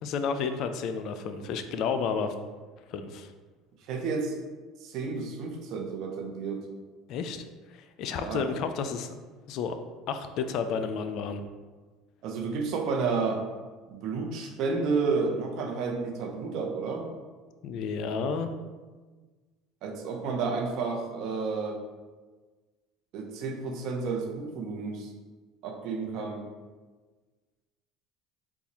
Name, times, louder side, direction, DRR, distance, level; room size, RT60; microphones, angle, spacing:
voice 1, 0.0-2.3 2.9-3.3 7.1-7.4 7.7-9.1 9.5-9.8 10.1-11.4 17.6-18.5, left 6 dB, 60° left, 8 dB, 0.3 m, -31 dB
voice 2, 3.9-4.4 4.8-6.6 8.1-8.4 12.2-13.4 13.9-17.1 19.8-21.8 23.1-25.1 25.6-26.4, right 4 dB, 60° right, 2 dB, 0.7 m, -31 dB
4.1 x 2.4 x 4.1 m, 1.4 s
hypercardioid pair, 80°, 0 cm